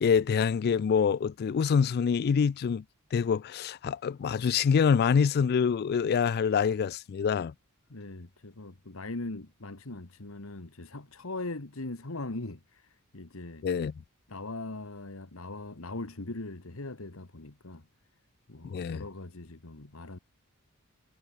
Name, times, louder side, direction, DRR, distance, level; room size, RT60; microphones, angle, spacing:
voice 1, 0.0-2.8 3.1-7.5 13.6-13.9 18.6-19.0, left 6 dB, 50° left, 0.3 m, -26 dB
voice 2, 7.9-13.7 14.3-17.9 18.5-20.2, left 2 dB, 65° left, 1.6 m, -40 dB
head